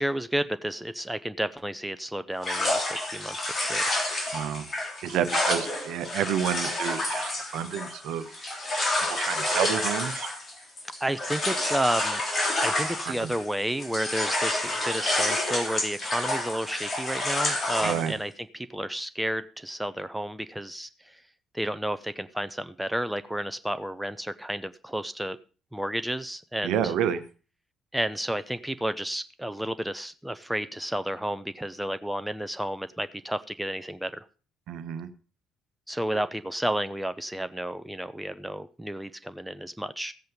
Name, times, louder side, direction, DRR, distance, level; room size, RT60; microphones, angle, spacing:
voice 1, 0.0-3.8 11.0-12.2 12.6-20.9 21.5-25.4 25.7-26.9 27.9-34.2 35.9-40.1, right 1 dB, 5° right, 12 dB, 0.7 m, -31 dB
sound 1, 2.4-13.5 13.8-18.1, left 1 dB, 35° left, 3.6 m, -29 dB
voice 2, 4.3-4.6 5.0-8.3 9.0-10.3 13.2-13.3 17.8-18.1 26.6-27.2 34.7-35.1, right 9 dB, 60° right, 11 dB, 1.0 m, -29 dB
14.5 x 8.0 x 5.2 m, 0.38 s
figure-of-eight pair, 50°, 0 cm